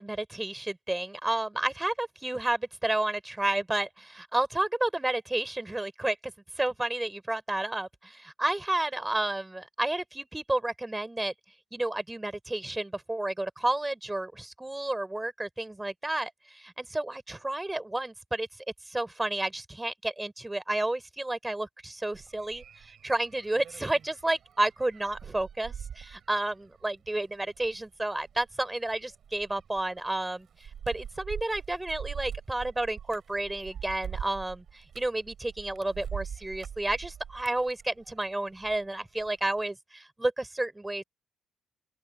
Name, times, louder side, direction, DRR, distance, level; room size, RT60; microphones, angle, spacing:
voice 1, 0.0-11.3 11.7-18.5 18.9-30.5 30.9-41.0, right 2 dB, 15° right, 4.3 m, -31 dB
sound 1, 22.1-38.9 39.2-39.6, right 8 dB, 65° right, 6.2 m, -43 dB
open air
cardioid pair, 75°, 0 cm